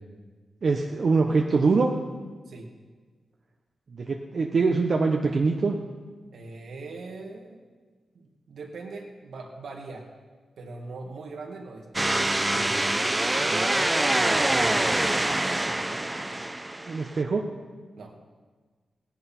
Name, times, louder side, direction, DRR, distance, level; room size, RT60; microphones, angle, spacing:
voice 1, 0.6-1.9 3.9-5.8 16.9-17.5, right 4 dB, 60° right, 1 dB, 1.0 m, -23 dB
voice 2, 6.3-7.6 8.1-10.1 10.6-12.9 13.4-15.1 15.6-16.5 18.0-18.2, right 3 dB, 80° right, 0 dB, 2.1 m, -41 dB
sound 1, 11.9-17.1, right 1 dB, 20° right, 0.7 m, -25 dB
17.0 x 11.0 x 4.4 m, 1.5 s
cardioid pair, 65°, 0 cm